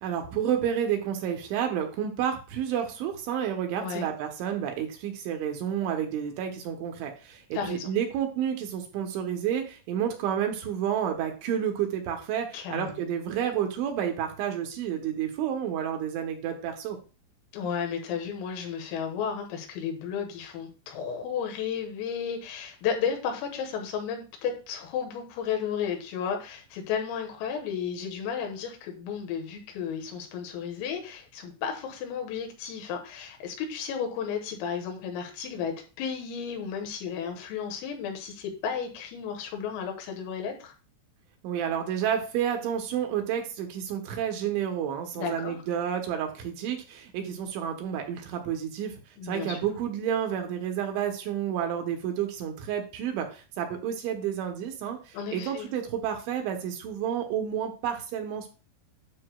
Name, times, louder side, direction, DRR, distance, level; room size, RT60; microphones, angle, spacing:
voice 1, 0.0-17.0 41.4-48.9 49.2-58.5, right 9 dB, 75° right, 4 dB, 3.0 m, -30 dB
voice 2, 3.8-4.1 7.5-7.9 12.5-13.1 17.5-40.7 45.2-45.6 49.2-49.6 55.1-55.7, left 7 dB, 85° left, 3 dB, 4.0 m, -33 dB
9.7 x 6.9 x 2.3 m, 0.35 s
omnidirectional pair, 5.9 m